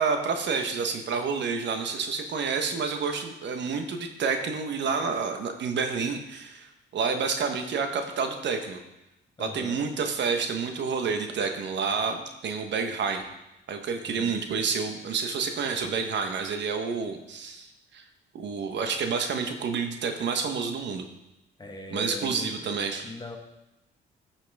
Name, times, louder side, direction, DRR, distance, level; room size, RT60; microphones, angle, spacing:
voice 1, 0.0-8.8 9.4-13.3 13.7-17.7 17.9-18.0 18.3-21.1 21.9-23.1, right 5 dB, 65° right, 6 dB, 1.1 m, -29 dB
voice 2, 9.4-9.8 14.1-14.4 17.1-17.2 21.6-22.7 23.0-23.4, left 2 dB, 20° left, 3 dB, 1.3 m, -40 dB
11.0 x 5.9 x 3.4 m, 0.92 s
cardioid pair, 90°, 20 cm